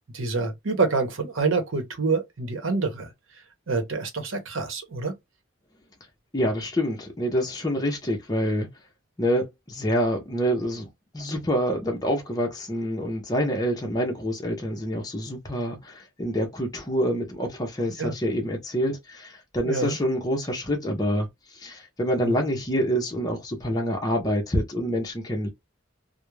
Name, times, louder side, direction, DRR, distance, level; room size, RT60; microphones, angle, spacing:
voice 1, 0.1-3.1 3.7-5.1 18.0-18.1 19.6-19.9 22.2-22.4, right 4 dB, 85° right, 0.8 m, -27 dB
voice 2, 6.3-8.7 9.2-10.9 11.1-21.3 21.5-25.5, equal, 20° left, 0.6 m, -26 dB
2.3 x 2.0 x 3.0 m
head